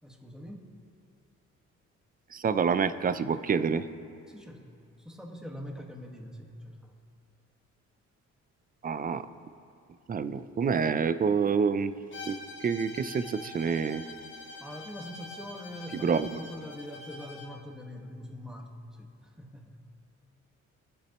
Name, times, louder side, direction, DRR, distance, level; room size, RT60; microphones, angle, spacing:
voice 1, 0.0-0.7 4.3-4.7 5.0-6.9 14.6-19.8, left 1 dB, ahead, 0 dB, 1.6 m, -43 dB
voice 2, 2.3-3.9 8.8-9.2 10.1-11.9 12.3-14.0 16.0-16.4, right 6 dB, 30° right, 12 dB, 0.5 m, -27 dB
Bowed string instrument, 12.1-17.6, left 3 dB, 40° left, 1.4 m, -45 dB
20.0 x 8.0 x 3.0 m, 2.5 s
cardioid pair, 90°, 30 cm